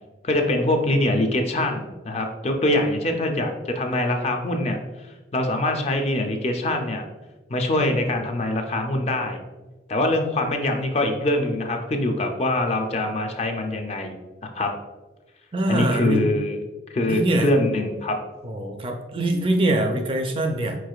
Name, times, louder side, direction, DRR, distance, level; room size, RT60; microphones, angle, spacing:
voice 1, 0.2-4.8 5.3-7.1 7.5-9.4 9.9-14.2 14.6-14.7 15.7-16.6 16.9-18.2, left 1 dB, 35° left, 4 dB, 0.5 m, -23 dB
voice 2, 15.5-16.3 17.1-17.5 18.4-20.8, right 1 dB, 30° right, 4 dB, 0.4 m, -23 dB
4.8 x 4.6 x 2.4 m, 1.2 s
head